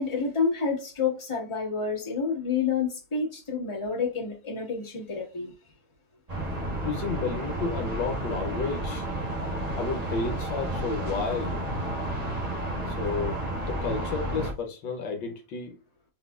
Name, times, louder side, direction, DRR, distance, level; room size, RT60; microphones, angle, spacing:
voice 1, 0.0-5.5, left 5 dB, 15° left, 1.7 m, -29 dB
sound 1, 6.3-14.5, right 1 dB, 25° right, 0.9 m, -31 dB
voice 2, 6.8-9.1 9.7-11.6 12.9-13.4 13.7-15.8, left 4 dB, 75° left, 1.5 m, -32 dB
4.2 x 4.1 x 2.4 m
omnidirectional pair, 2.1 m